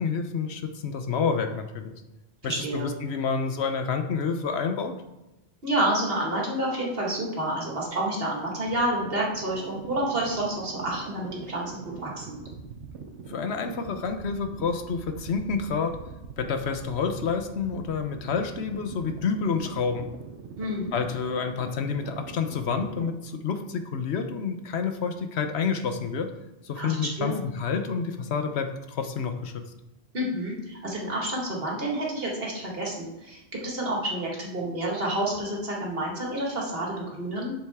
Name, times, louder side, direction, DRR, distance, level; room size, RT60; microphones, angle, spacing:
voice 1, 0.0-1.9 2.4-4.9 13.3-15.9 16.4-20.1 20.9-26.3 26.6-29.6, left 5 dB, 75° left, 7 dB, 1.0 m, -29 dB
voice 2, 2.4-2.9 5.6-12.4 20.6-20.9 26.8-27.4 30.1-37.5, right 1 dB, 60° right, -2 dB, 2.1 m, -29 dB
sound 1, 9.0-23.1, right 5 dB, 90° right, 1.1 m, -43 dB
7.7 x 7.3 x 3.6 m, 0.98 s
omnidirectional pair, 1.1 m